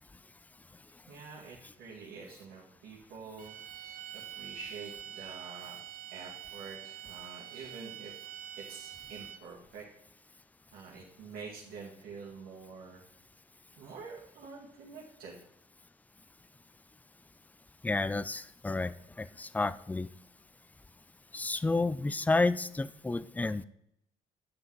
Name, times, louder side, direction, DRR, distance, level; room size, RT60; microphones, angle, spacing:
voice 1, 1.1-3.6 3.8-5.8 6.1-8.1 8.6-9.8 10.7-13.0 13.8-15.4, right 5 dB, 75° right, -4 dB, 1.9 m, -47 dB
sound 1, 3.4-9.6, right 12 dB, 60° right, 0.7 m, -46 dB
voice 2, 17.8-20.1 21.3-23.6, left 3 dB, 10° left, 17 dB, 0.4 m, -31 dB
9.6 x 6.0 x 4.7 m, 0.77 s
cardioid pair, 95°, 16 cm